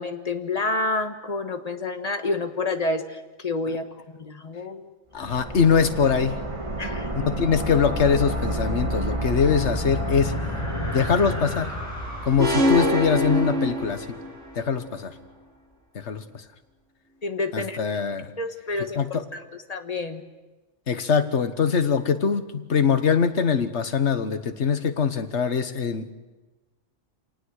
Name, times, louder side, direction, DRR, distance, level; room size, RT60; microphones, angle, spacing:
voice 1, 0.0-4.9 6.8-7.1 17.2-17.8 18.4-19.4 19.7-20.2, left 3 dB, 30° left, 7 dB, 1.5 m, -29 dB
voice 2, 5.1-6.4 7.1-10.4 10.9-11.7 12.2-14.2 14.5-15.1 15.9-16.4 17.5-18.3 18.9-19.1 20.9-26.1, left 6 dB, 65° left, 9 dB, 1.6 m, -23 dB
sound 1, 5.1-11.6, right 1 dB, 25° right, 1.8 m, -30 dB
sound 2, 9.2-14.9, left 1 dB, 15° left, 6.7 m, -34 dB
sound 3, 12.4-14.4, left 1 dB, 70° right, 3.1 m, -23 dB
27.0 x 18.5 x 6.5 m, 1.2 s
omnidirectional pair, 1.3 m